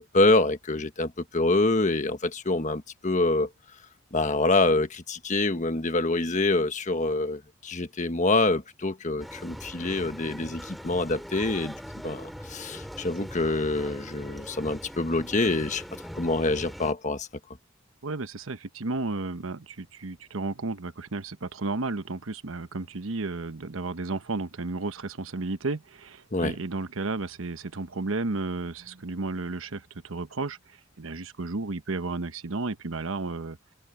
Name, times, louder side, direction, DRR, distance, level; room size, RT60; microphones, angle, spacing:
voice 1, 0.0-3.5 4.1-11.7 12.0-15.8 16.1-17.3 26.3-26.6, left 2 dB, 35° left, 1.4 m, -26 dB
sound 1, 9.2-16.9, equal, ahead, 2.5 m, -41 dB
voice 2, 18.0-30.6 31.0-33.6, right 3 dB, 85° right, 1.0 m, -33 dB
open air
head